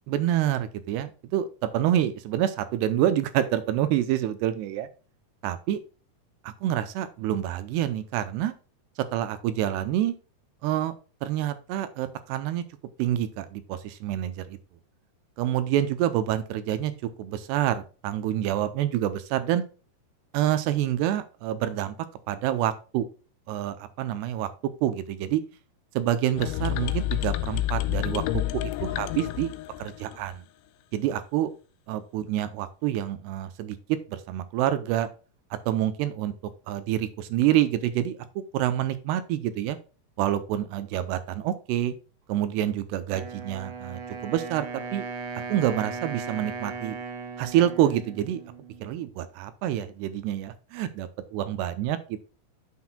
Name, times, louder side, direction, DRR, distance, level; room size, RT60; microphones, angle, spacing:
voice 1, 0.1-4.9 5.4-5.8 6.4-8.5 9.0-10.1 10.6-10.9 11.2-12.6 13.0-14.6 15.4-16.9 17.2-19.6 20.3-22.0 22.3-23.1 23.5-24.5 24.8-25.4 25.9-29.5 29.8-30.4 30.9-31.5 31.9-35.1 35.5-36.3 36.7-39.8 40.2-41.9 42.3-45.1 45.5-47.0 47.4-48.4 48.8-52.2, right 12 dB, 85° right, 12 dB, 2.7 m, -27 dB
sound 1, 26.4-30.3, left 14 dB, 85° left, 2.8 m, -29 dB
Wind instrument woodwind instrument, 43.1-49.1, right 4 dB, 70° right, 1.9 m, -37 dB
9.5 x 6.2 x 2.3 m, 0.35 s
omnidirectional pair, 4.8 m